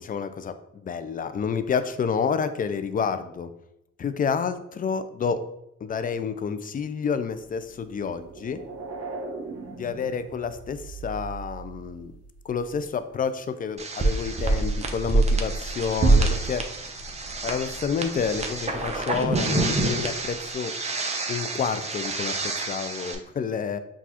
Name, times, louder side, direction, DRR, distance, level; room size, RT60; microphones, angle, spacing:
voice 1, 0.0-3.5 4.0-5.4 5.8-8.6 9.7-12.1 12.4-16.6 17.4-20.7 21.3-23.8, left 6 dB, 30° left, 11 dB, 0.3 m, -29 dB
sound 1, 7.4-12.9, right 4 dB, 55° right, 0.8 m, -40 dB
sound 2, 13.8-23.1, right 3 dB, 20° right, 0.6 m, -26 dB
6.1 x 2.4 x 2.8 m, 0.86 s
cardioid pair, 90°, 30 cm